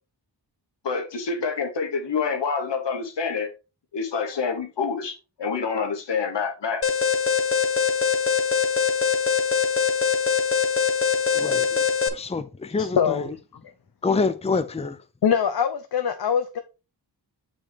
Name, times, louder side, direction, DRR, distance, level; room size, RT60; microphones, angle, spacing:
voice 1, 0.8-3.5 3.9-6.8, left 5 dB, 85° left, 1.3 m, -27 dB
Alarm, 6.8-12.1, left 6 dB, 30° left, 0.9 m, -22 dB
voice 2, 11.3-11.8 12.1-13.3 14.0-14.9, left 4 dB, 15° left, 0.6 m, -26 dB
voice 3, 13.0-13.3 15.2-16.6, left 7 dB, 65° left, 0.7 m, -22 dB
6.5 x 4.8 x 3.4 m
wide cardioid pair, 65°, 42 cm